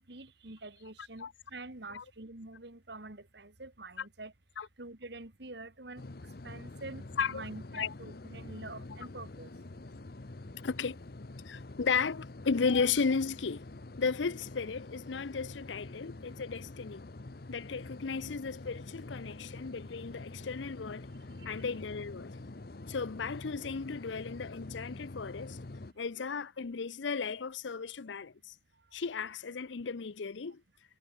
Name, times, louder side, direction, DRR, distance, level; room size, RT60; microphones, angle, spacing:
voice 1, 0.0-4.3 4.8-6.0 6.4-7.0 7.3-9.5 11.5-11.6 21.4-21.6, right 2 dB, 65° right, 2.4 m, -46 dB
sound 1, 6.0-25.9, left 2 dB, 55° left, 0.9 m, -46 dB
voice 2, 10.6-11.0 11.5-13.6 14.0-17.1 17.5-21.1 21.5-22.3 22.9-25.6 26.0-28.5 28.9-30.6, left 5 dB, 80° left, 0.6 m, -34 dB
head